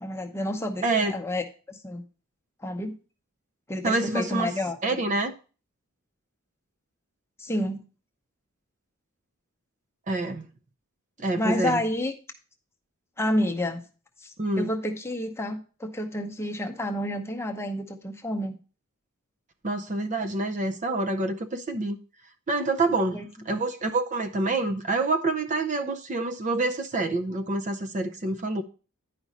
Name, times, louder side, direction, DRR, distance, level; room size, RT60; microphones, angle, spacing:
voice 1, 0.0-2.0 2.6-3.0 3.7-4.8 7.4-7.8 11.3-12.1 13.2-13.8 14.2-18.6 23.1-23.3, left 1 dB, 10° left, 0.8 m, -29 dB
voice 2, 0.8-1.1 3.8-4.5 4.8-5.3 10.1-10.4 11.2-11.8 14.4-14.7 19.6-22.0 22.5-28.6, right 2 dB, 35° right, 0.6 m, -27 dB
10.5 x 5.1 x 4.1 m
head